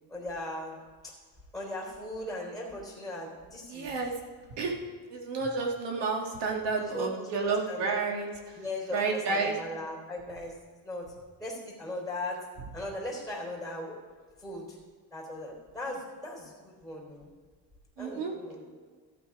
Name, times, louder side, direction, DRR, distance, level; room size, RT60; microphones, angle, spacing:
voice 1, 0.1-0.8 1.0-1.1 1.5-3.9 6.8-8.0 8.6-10.5 10.8-11.1 11.4-12.4 12.7-13.9 14.4-14.8 15.1-17.3 18.0-18.8, left 1 dB, ahead, -3 dB, 3.7 m, -38 dB
voice 2, 3.7-4.1 4.6-4.7 5.1-8.3 8.9-9.5 18.0-18.3, right 4 dB, 80° right, 1 dB, 2.3 m, -30 dB
14.5 x 8.6 x 4.9 m, 1.5 s
cardioid pair, 155°, 41 cm